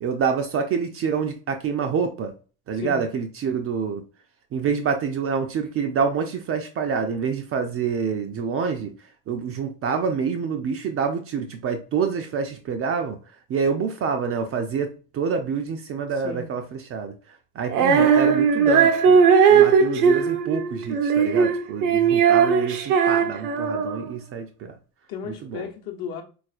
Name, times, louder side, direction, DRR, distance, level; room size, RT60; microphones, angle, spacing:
voice 1, 0.0-2.3 2.7-4.0 4.5-8.9 9.3-13.2 13.5-17.1 17.6-19.2 19.5-24.7 25.4-25.7, right 6 dB, 30° right, 0.4 m, -27 dB
Female singing, 17.7-24.1, right 6 dB, 70° right, 0.6 m, -18 dB
voice 2, 25.1-26.2, left 6 dB, 50° left, 0.9 m, -34 dB
4.0 x 2.4 x 2.4 m
figure-of-eight pair, 55°, 47 cm